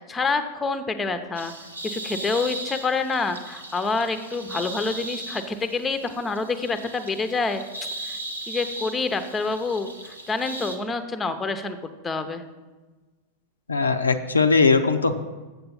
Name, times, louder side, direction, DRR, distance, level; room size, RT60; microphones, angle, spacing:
voice 1, 0.0-1.5 1.8-7.6 8.0-8.2 8.5-11.8 12.0-12.4, left 4 dB, 15° left, 9 dB, 0.7 m, -27 dB
sound 1, 1.3-10.8, right 1 dB, 85° right, 1.0 m, -37 dB
voice 2, 13.7-15.1, left 4 dB, 80° left, 7 dB, 0.5 m, -19 dB
7.7 x 6.8 x 5.6 m, 1.2 s
figure-of-eight pair, 90°, 0 cm